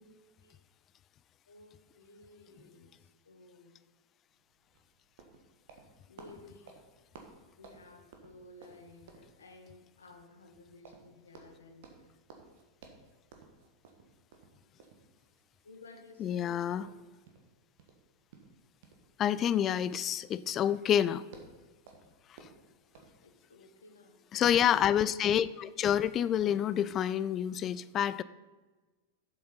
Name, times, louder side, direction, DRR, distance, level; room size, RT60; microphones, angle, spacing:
voice 1, 1.5-3.8 6.1-6.8 7.6-12.2 15.6-16.9 23.2-24.2, left 2 dB, 70° left, 5 dB, 1.3 m, -55 dB
sound 1, 4.3-23.1, right 4 dB, 55° right, 1.5 m, -57 dB
voice 2, 16.2-16.9 19.2-21.2 22.4-22.5 24.3-28.2, left 10 dB, 30° left, 17 dB, 0.3 m, -28 dB
7.7 x 7.6 x 5.6 m, 1.2 s
figure-of-eight pair, 90°, 0 cm